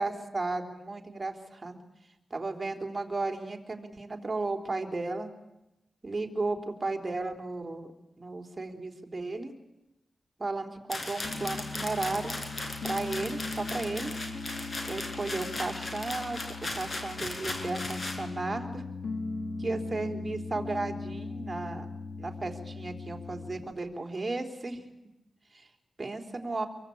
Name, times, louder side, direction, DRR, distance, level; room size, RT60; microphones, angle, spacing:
voice 1, 0.0-1.8 2.3-5.3 6.0-7.8 8.2-9.5 10.4-12.4 12.8-14.1 14.9-16.4 16.8-18.8 19.6-21.9 22.2-24.8 25.5-25.7 26.0-26.7, right 3 dB, 30° right, 4 dB, 3.6 m, -34 dB
sound 1, 10.9-18.2, left 2 dB, 40° left, 5.6 m, -37 dB
Piano, 11.2-23.7, left 3 dB, 70° left, 2.6 m, -39 dB
26.0 x 23.0 x 8.6 m, 0.92 s
cardioid pair, 80°, 0 cm